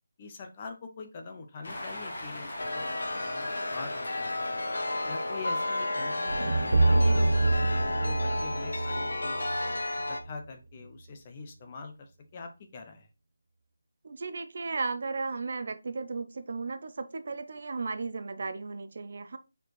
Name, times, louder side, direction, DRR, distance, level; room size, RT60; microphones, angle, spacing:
voice 1, 0.2-3.0 3.2-4.6 5.1-7.2 7.7-13.1, left 4 dB, 15° left, 5 dB, 0.6 m, -44 dB
Cheering, 1.6-9.3, left 1 dB, 40° left, 1.9 m, -42 dB
Chime, 2.6-10.2, left 2 dB, 80° left, 1.3 m, -32 dB
sound 1, 6.3-10.4, right 2 dB, 65° right, 0.8 m, -26 dB
voice 2, 14.0-19.4, right 4 dB, 35° right, 9 dB, 0.5 m, -35 dB
5.1 x 4.4 x 4.6 m, 0.27 s
figure-of-eight pair, 180°, 0 cm